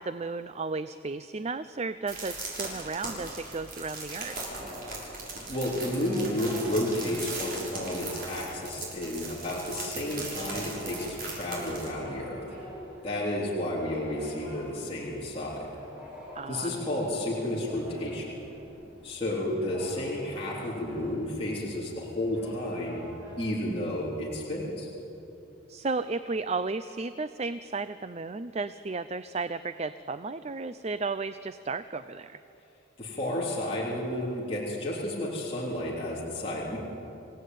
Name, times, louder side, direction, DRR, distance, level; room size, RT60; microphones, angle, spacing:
voice 1, 0.0-4.4 16.4-16.8 25.7-32.4, right 3 dB, 35° right, 12 dB, 0.5 m, -34 dB
sound 1, 2.1-11.9, right 3 dB, 50° right, 6.4 m, -39 dB
sound 2, 4.2-24.0, equal, 10° right, 7.0 m, -46 dB
voice 2, 5.5-12.4 13.0-15.7 16.5-18.4 19.0-23.1 23.4-24.9 33.0-36.8, left 1 dB, 30° left, -6 dB, 3.6 m, -32 dB
27.5 x 17.0 x 9.3 m, 3.0 s
head